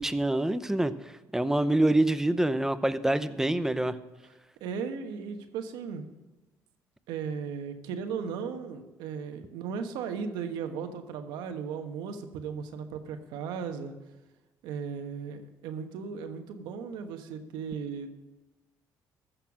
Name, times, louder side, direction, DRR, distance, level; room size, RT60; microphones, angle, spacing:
voice 1, 0.0-4.0, right 1 dB, 5° right, 12 dB, 0.7 m, -26 dB
voice 2, 4.6-6.1 7.1-13.9 14.6-18.1, right 6 dB, 85° right, 7 dB, 1.2 m, -36 dB
14.5 x 6.7 x 6.0 m, 1.1 s
supercardioid pair, 80°, 7 cm